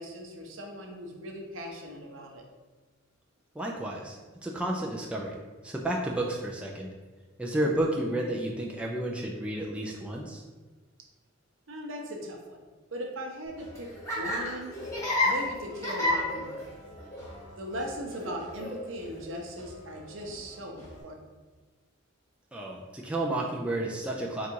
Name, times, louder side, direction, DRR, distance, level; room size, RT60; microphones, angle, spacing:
voice 1, 0.0-2.4 11.7-12.6 12.9-14.7 15.2-16.7 17.6-21.2, equal, 70° right, 1 dB, 0.7 m, -39 dB
voice 2, 3.6-5.4 5.6-6.9 7.4-10.4 22.5-24.5, right 1 dB, 5° right, -2 dB, 0.3 m, -31 dB
Laughter, 13.5-21.0, left 1 dB, 15° left, 1.1 m, -33 dB
3.9 x 2.4 x 4.5 m, 1.3 s
head